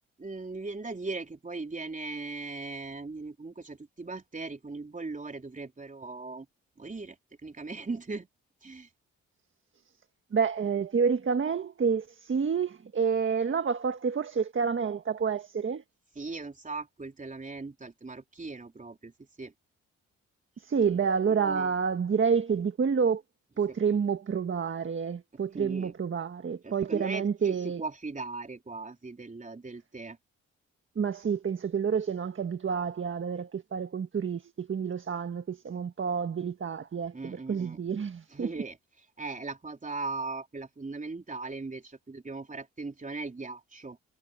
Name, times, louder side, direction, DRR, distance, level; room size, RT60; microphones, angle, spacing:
voice 1, 0.2-6.5 6.8-7.2 7.4-8.3 8.6-8.9 16.2-19.1 19.4-19.5 21.3-21.7 25.5-25.9 26.6-30.2 37.1-37.8 38.3-38.8 39.2-44.0, right 3 dB, 25° right, 3.9 m, -39 dB
voice 2, 10.3-15.8 20.6-23.2 23.6-27.8 30.9-38.5, right 6 dB, 45° right, 1.7 m, -29 dB
supercardioid pair, 60°, 29 cm